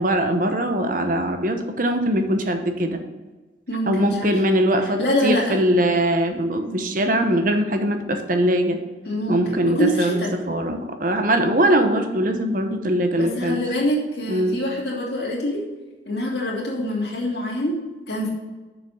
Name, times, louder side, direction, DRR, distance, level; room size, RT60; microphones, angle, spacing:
voice 1, 0.0-3.0 3.9-8.8 9.3-13.6 14.3-14.6, right 1 dB, 45° right, 6 dB, 1.0 m, -21 dB
voice 2, 3.7-4.4 4.8-5.6 9.0-10.4 13.2-15.6 16.1-18.3, left 1 dB, 60° left, -4 dB, 2.6 m, -25 dB
6.8 x 6.7 x 5.6 m, 1.2 s
head